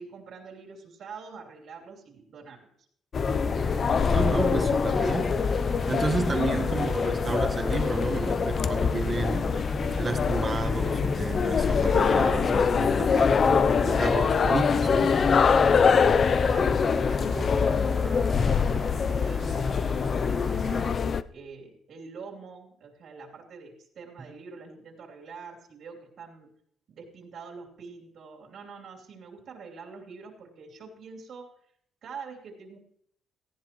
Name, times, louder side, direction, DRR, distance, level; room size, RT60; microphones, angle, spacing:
voice 1, 0.0-2.7 15.6-20.9 21.3-26.5 26.9-31.5 32.0-32.8, right 5 dB, 65° right, 3.0 m, -45 dB
sound 1, 3.1-21.2, left 6 dB, 45° left, 0.5 m, -24 dB
sound 2, 3.2-21.0, right 1 dB, 5° right, 0.9 m, -37 dB
voice 2, 4.0-5.4 5.9-9.6 10.0-15.2, right 3 dB, 30° right, 1.3 m, -31 dB
17.5 x 15.0 x 3.0 m
cardioid pair, 95°, 0 cm